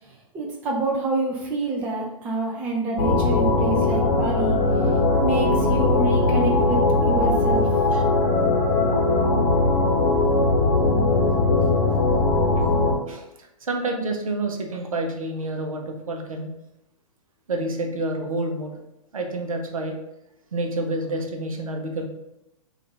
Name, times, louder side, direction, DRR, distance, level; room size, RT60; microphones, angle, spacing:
voice 1, 0.3-4.7 5.2-6.8 7.1-7.7, right 2 dB, 10° right, -1 dB, 0.3 m, -27 dB
sound 1, 3.0-12.9, left 2 dB, 40° left, 0.8 m, -20 dB
voice 2, 13.1-16.5 17.5-18.8 19.1-20.0 20.5-22.1, right 2 dB, 65° right, 3 dB, 0.7 m, -28 dB
3.7 x 2.5 x 3.3 m, 0.86 s
figure-of-eight pair, 115°, 19 cm